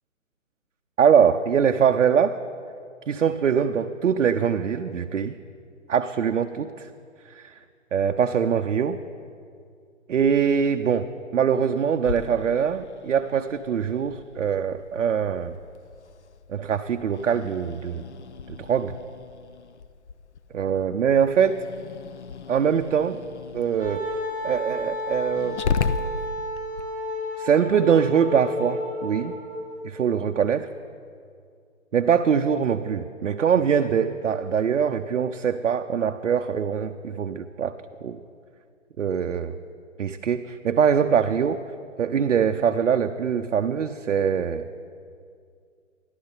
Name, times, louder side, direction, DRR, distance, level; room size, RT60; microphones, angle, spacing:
voice 1, 1.0-2.4 3.1-5.4 5.9-6.9 7.3-7.6 7.9-9.0 10.1-15.6 16.5-18.0 18.5-18.9 20.5-21.6 22.5-23.2 23.5-24.1 24.4-25.6 27.4-29.3 29.8-30.7 31.9-38.2 39.0-39.6 40.0-41.6 42.0-44.7, right 7 dB, 70° right, 7 dB, 0.5 m, -23 dB
Growling, 12.0-26.8, left 5 dB, 60° left, 0.6 m, -36 dB
Wind instrument woodwind instrument, 23.8-29.7, left 1 dB, 10° right, 1.2 m, -32 dB
13.0 x 11.5 x 3.9 m, 2.3 s
figure-of-eight pair, 140°, 39 cm